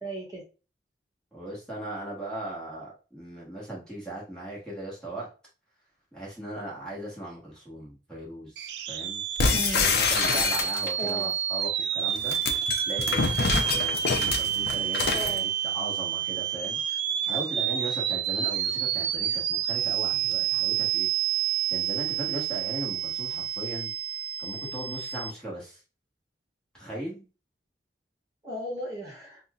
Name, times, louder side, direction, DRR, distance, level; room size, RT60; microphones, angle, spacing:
voice 1, 0.0-0.4 9.5-9.8 11.0-11.3 15.1-15.5 28.4-29.4, right 1 dB, 20° right, -3 dB, 1.2 m, -35 dB
voice 2, 1.3-5.3 6.1-9.2 9.7-12.4 12.8-16.8 17.3-21.1 21.7-23.9 24.4-25.8 26.7-27.3, right 1 dB, 5° left, -6 dB, 1.2 m, -38 dB
sound 1, 8.6-25.3, right 10 dB, 70° right, 0.3 m, -29 dB
sound 2, 9.4-11.1 12.1-15.4, left 4 dB, 60° left, 0.5 m, -26 dB
5.4 x 2.2 x 2.3 m, 0.33 s
head